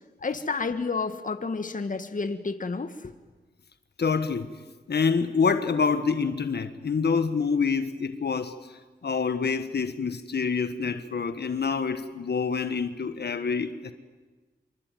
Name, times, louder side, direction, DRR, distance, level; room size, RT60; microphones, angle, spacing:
voice 1, 0.2-3.1, left 4 dB, 50° left, 1.7 m, -30 dB
voice 2, 4.0-4.5 4.9-8.7 9.0-13.9, left 5 dB, 70° left, 1.5 m, -26 dB
26.5 x 24.0 x 9.3 m
cardioid pair, 60°, 17 cm